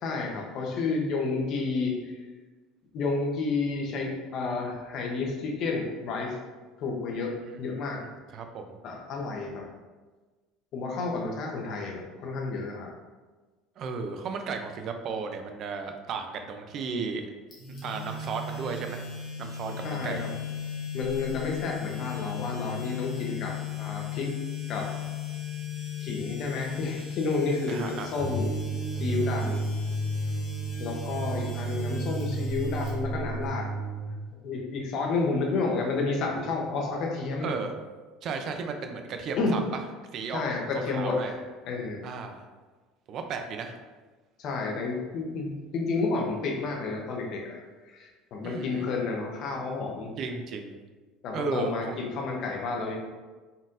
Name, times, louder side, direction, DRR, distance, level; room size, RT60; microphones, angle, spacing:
voice 1, 0.0-2.2 2.9-6.4 6.8-8.0 8.8-9.7 10.7-12.9 19.8-20.3 20.9-24.3 24.7-24.9 26.0-28.5 28.9-29.6 30.8-33.7 34.4-37.5 39.4-39.6 40.3-42.0 44.4-47.6 47.9-50.1 51.2-53.0, left 3 dB, 45° left, 0 dB, 0.8 m, -31 dB
voice 2, 7.5-7.8 8.3-8.8 13.8-17.3 17.8-19.0 19.4-20.3 27.7-28.1 37.4-37.7 38.2-39.8 40.1-40.4 40.9-41.3 42.0-42.4 43.1-43.8 48.4-48.9 50.2-50.8 51.3-52.0, right 5 dB, 40° right, 5 dB, 0.4 m, -34 dB
sound 1, 17.5-33.5, left 6 dB, 30° left, 1.3 m, -37 dB
sound 2, 28.2-34.1, right 2 dB, 75° right, 1.5 m, -32 dB
4.0 x 3.9 x 2.5 m, 1.3 s
cardioid pair, 145°, 0 cm